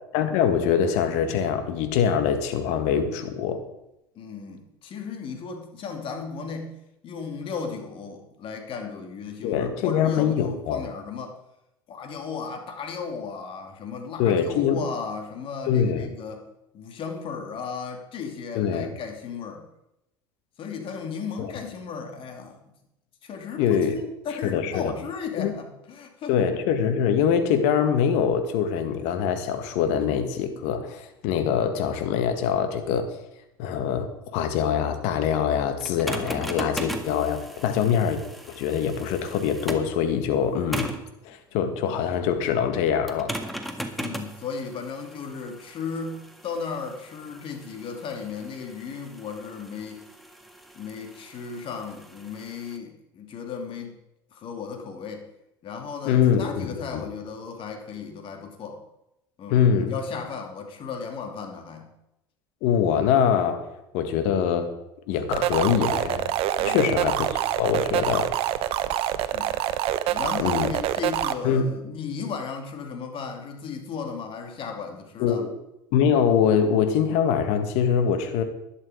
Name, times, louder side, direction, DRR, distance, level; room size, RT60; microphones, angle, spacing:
voice 1, 0.1-3.6 9.4-10.8 14.2-14.8 15.7-16.1 18.5-18.9 23.6-24.0 24.4-24.9 25.4-25.5 26.3-33.1 33.6-38.2 38.5-40.9 41.2-43.4 56.0-57.0 59.5-59.9 62.6-63.6 63.9-64.7 65.1-66.3 66.6-68.3 70.4-70.7 71.4-71.7 75.2-75.5 75.9-78.4, left 8 dB, 65° left, 8 dB, 1.7 m, -23 dB
voice 2, 4.1-6.8 7.0-11.4 11.9-16.4 16.7-19.7 20.6-22.6 23.2-26.3 44.0-50.0 50.7-54.0 54.3-55.3 55.6-58.8 59.4-61.9 66.6-67.0 69.3-69.5 70.1-75.5, left 5 dB, 45° left, 4 dB, 2.6 m, -35 dB
sound 1, 35.8-40.0 40.7-41.1 43.1-52.8, right 1 dB, ahead, 1.7 m, -38 dB
sound 2, 65.3-71.3, right 12 dB, 55° right, 0.8 m, -26 dB
11.5 x 11.0 x 5.0 m, 0.86 s
hypercardioid pair, 70°, 12 cm